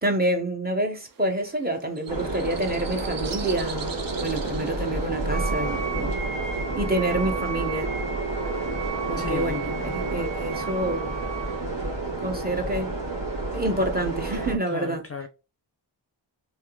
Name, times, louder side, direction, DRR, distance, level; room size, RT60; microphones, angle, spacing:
voice 1, 0.0-6.2 6.8-7.9 9.1-11.1 12.2-12.9 13.5-15.0, right 1 dB, 20° right, 0.8 m, -28 dB
sound 1, 1.0-6.2, right 7 dB, 50° right, 0.6 m, -42 dB
sound 2, 2.1-14.6, right 2 dB, 70° right, 1.6 m, -30 dB
Wind instrument woodwind instrument, 5.3-11.6, right 7 dB, 90° right, 0.7 m, -35 dB
voice 2, 9.2-9.7 14.7-15.3, left 4 dB, 35° left, 0.4 m, -33 dB
3.4 x 2.8 x 2.2 m
wide cardioid pair, 100°, 44 cm